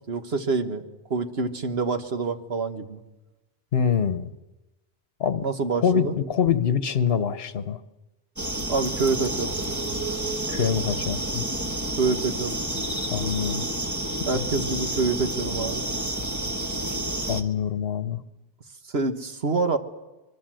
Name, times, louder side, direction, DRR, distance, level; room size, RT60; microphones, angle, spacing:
voice 1, 0.1-0.8 1.1-3.0 5.4-6.1 8.7-9.5 12.0-12.6 14.3-15.8 18.9-19.8, right 4 dB, 65° right, 7 dB, 1.8 m, -26 dB
voice 2, 3.7-4.3 5.2-5.4 5.8-7.8 10.5-11.5 13.1-13.7 14.5-14.7 17.3-18.2, left 7 dB, 60° left, 11 dB, 1.2 m, -25 dB
sound 1, 8.4-17.4, right 1 dB, 15° right, 1.3 m, -29 dB
24.5 x 23.0 x 7.7 m, 1.1 s
omnidirectional pair, 1.1 m